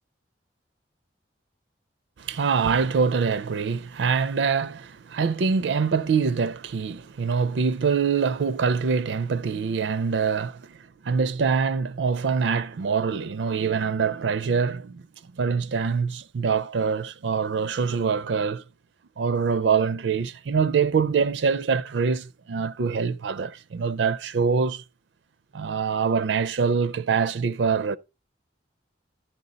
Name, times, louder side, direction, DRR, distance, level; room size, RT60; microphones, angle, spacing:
voice 1, 2.2-15.0 15.4-18.6 19.2-24.8 25.5-28.0, right 5 dB, 80° right, 0.4 m, -24 dB
13.5 x 4.5 x 3.9 m
head